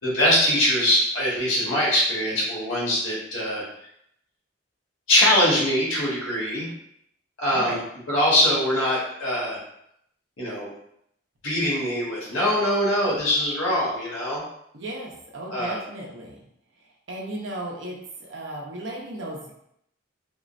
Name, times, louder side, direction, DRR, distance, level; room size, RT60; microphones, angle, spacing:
voice 1, 0.0-3.6 5.1-6.7 7.4-7.8 8.1-9.6 10.4-10.7 11.4-14.4 15.5-15.8, left 1 dB, 80° left, -6 dB, 1.4 m, -22 dB
voice 2, 14.7-16.4 16.8-19.5, right 1 dB, 60° right, -2 dB, 0.7 m, -35 dB
3.6 x 2.1 x 2.5 m, 0.74 s
head